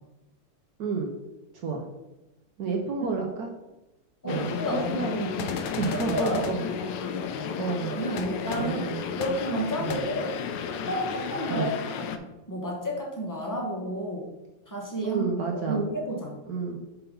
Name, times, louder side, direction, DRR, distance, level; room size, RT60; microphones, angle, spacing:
voice 1, 0.8-1.1 1.5-1.8 2.6-3.5 4.2-4.5 4.9-6.6 6.9-7.0 7.6-8.0 8.5-9.0 9.8-10.0 11.5-11.7 15.0-15.9 16.5-16.8, right 5 dB, 65° right, 1 dB, 1.1 m, -30 dB
voice 2, 2.7-3.1 4.2-5.1 5.8-6.4 7.9-8.8 9.2-10.3 10.8-11.7 12.0-12.1 12.5-14.3 14.7-15.2 15.6-16.4, equal, 15° left, -2 dB, 0.9 m, -31 dB
sound 1, 4.3-12.2, left 6 dB, 75° left, 1.2 m, -33 dB
sound 2, 5.4-6.5 8.2-8.3 8.5-8.6 9.2-9.3 9.9-10.0, left 6 dB, 90° left, 0.7 m, -35 dB
5.7 x 4.0 x 5.3 m, 1.0 s
omnidirectional pair, 2.1 m